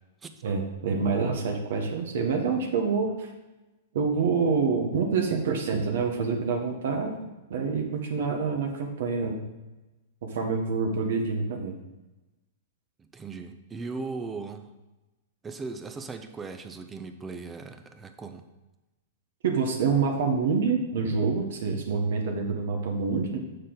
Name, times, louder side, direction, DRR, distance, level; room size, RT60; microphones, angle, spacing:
voice 1, 0.4-3.3 3.9-9.4 10.2-11.7 19.4-23.4, right 5 dB, 70° right, 2 dB, 1.2 m, -27 dB
voice 2, 13.0-14.7 15.4-18.4, right 4 dB, 15° right, 7 dB, 0.5 m, -38 dB
6.7 x 6.6 x 3.9 m, 1.1 s
supercardioid pair, 155°, 0 cm